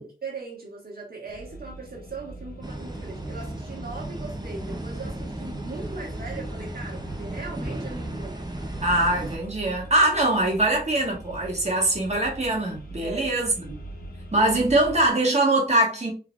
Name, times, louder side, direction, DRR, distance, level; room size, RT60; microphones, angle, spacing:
voice 1, 0.0-8.6 13.0-13.3, right 4 dB, 65° right, 1.5 m, -39 dB
sound 1, 1.3-15.1, right 1 dB, 60° left, 0.9 m, -42 dB
sound 2, 2.6-9.4, right 1 dB, 25° right, 0.7 m, -35 dB
voice 2, 8.8-13.8 14.3-16.1, right 1 dB, 40° right, 1.5 m, -22 dB
3.6 x 3.1 x 2.4 m
wide cardioid pair, 55°, 17 cm